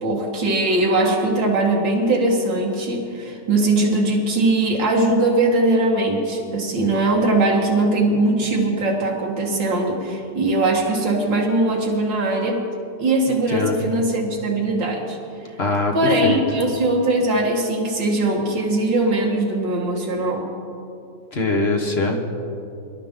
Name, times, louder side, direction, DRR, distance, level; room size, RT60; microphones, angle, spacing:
voice 1, 0.0-12.6 13.0-15.2 15.9-20.4, right 2 dB, 85° right, -2 dB, 2.5 m, -20 dB
voice 2, 13.3-13.9 15.6-15.9 16.2-16.4 21.3-22.2, left 3 dB, 40° left, 2 dB, 1.3 m, -22 dB
24.0 x 12.0 x 3.8 m, 2.7 s
omnidirectional pair, 2.0 m